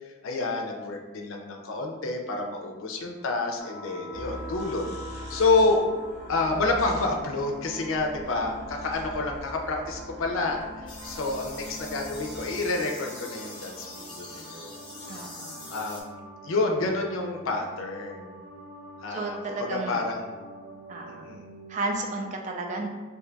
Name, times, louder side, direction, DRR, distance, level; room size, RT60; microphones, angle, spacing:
voice 1, 0.2-4.9 5.1-5.8 6.3-14.7 15.7-18.4 19.0-20.4 21.1-21.5, left 3 dB, 80° left, 2 dB, 0.4 m, -29 dB
sound 1, 3.6-22.1, right 1 dB, 75° right, 0.7 m, -44 dB
sound 2, 4.1-12.4, left 1 dB, 15° right, 0.7 m, -44 dB
sound 3, 10.9-16.0, left 2 dB, 25° left, 0.6 m, -43 dB
voice 2, 15.1-15.7 19.1-20.0 20.9-21.2 21.7-22.9, right 3 dB, 35° right, 2 dB, 0.3 m, -33 dB
2.7 x 2.2 x 3.8 m, 1.3 s
head